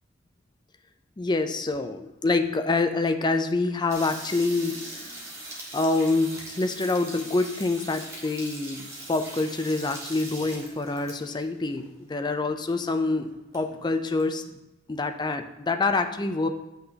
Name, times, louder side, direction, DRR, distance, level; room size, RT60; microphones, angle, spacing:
voice 1, 1.2-5.2 5.5-14.4 14.9-16.5, left 3 dB, 20° left, 8 dB, 0.5 m, -26 dB
sound 1, 3.9-11.4 11.7-11.8 12.1-12.2 12.8-12.9 13.1-14.2, right 1 dB, 15° right, 1.7 m, -41 dB
9.5 x 5.8 x 2.9 m, 1.0 s
head